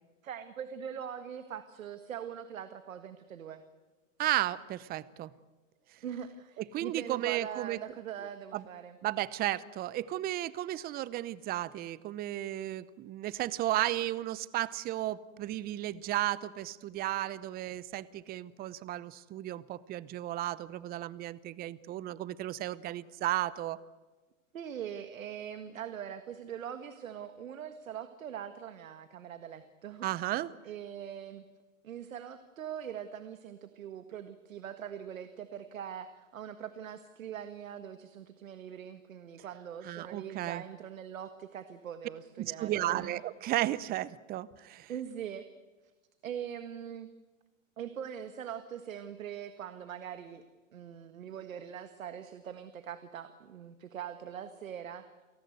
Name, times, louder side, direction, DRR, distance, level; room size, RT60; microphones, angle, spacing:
voice 1, 0.2-3.6 6.0-9.0 24.5-30.1 30.6-31.4 31.8-43.2 44.9-45.5 46.2-47.1 47.8-50.4 50.7-55.0, right 9 dB, 80° right, 10 dB, 1.7 m, -42 dB
voice 2, 4.2-5.3 6.6-7.8 8.5-8.6 9.0-23.8 30.0-30.5 39.8-40.6 42.4-44.9, right 14 dB, 25° right, 19 dB, 0.8 m, -34 dB
28.5 x 18.5 x 8.0 m, 1.2 s
hypercardioid pair, 120°, 40 cm